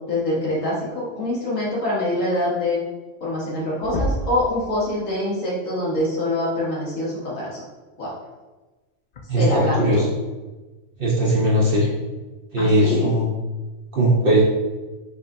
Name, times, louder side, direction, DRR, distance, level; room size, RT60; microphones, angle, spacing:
voice 1, 0.1-2.8 3.2-7.6 8.0-8.1 9.4-10.0 12.6-13.1, left 1 dB, 85° left, -6 dB, 1.7 m, -25 dB
sound 1, 3.4-3.5 3.8-4.5 6.2-6.3 8.1-8.3 9.1-9.2, equal, 55° left, 0.4 m, -27 dB
voice 2, 9.3-10.0 11.0-11.9 12.5-13.3 13.9-14.4, right 1 dB, 50° right, -6 dB, 1.1 m, -18 dB
5.5 x 3.4 x 2.6 m, 1.2 s
omnidirectional pair, 1.3 m